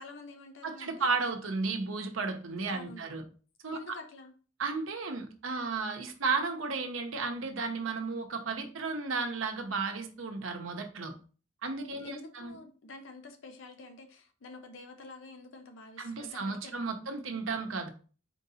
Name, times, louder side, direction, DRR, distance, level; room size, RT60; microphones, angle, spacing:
voice 1, 0.0-1.1 2.7-3.1 3.7-4.3 11.9-16.9, left 3 dB, 65° left, 6 dB, 0.6 m, -48 dB
voice 2, 0.6-3.2 3.6-3.8 4.6-11.1 11.6-12.5 16.0-17.9, right 4 dB, 75° right, 5 dB, 0.8 m, -34 dB
4.5 x 2.8 x 4.0 m, 0.38 s
head